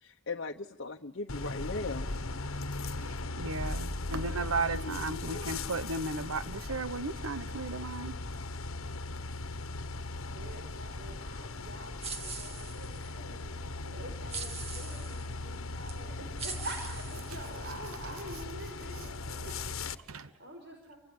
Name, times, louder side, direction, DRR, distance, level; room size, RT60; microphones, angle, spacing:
voice 1, 0.0-2.1 4.7-5.6, left 3 dB, 55° left, 1.1 m, -39 dB
sound 1, 1.3-20.0, left 2 dB, 75° left, 1.4 m, -38 dB
voice 2, 3.4-8.1 20.1-20.3, right 3 dB, 85° right, 1.1 m, -35 dB
voice 3, 4.0-4.5 10.3-21.0, right 1 dB, 55° right, 5.4 m, -47 dB
sound 2, 12.0-13.1 14.3-15.3 15.9-16.0 16.4-17.8, right 4 dB, 30° right, 2.6 m, -41 dB
29.5 x 25.0 x 7.9 m
head